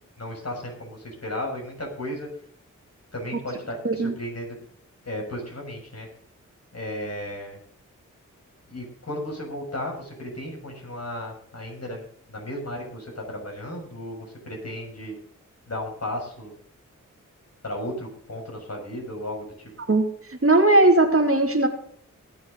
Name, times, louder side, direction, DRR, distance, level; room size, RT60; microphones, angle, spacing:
voice 1, 0.2-2.3 3.1-4.5 5.0-6.1 6.7-7.6 8.7-12.0 12.3-15.2 15.7-16.5 17.6-19.4, left 1 dB, 50° left, 0 dB, 6.6 m, -34 dB
voice 2, 20.3-21.7, right 2 dB, 45° right, 4 dB, 2.5 m, -18 dB
20.5 x 7.8 x 3.9 m, 0.62 s
cardioid pair, 50°, 32 cm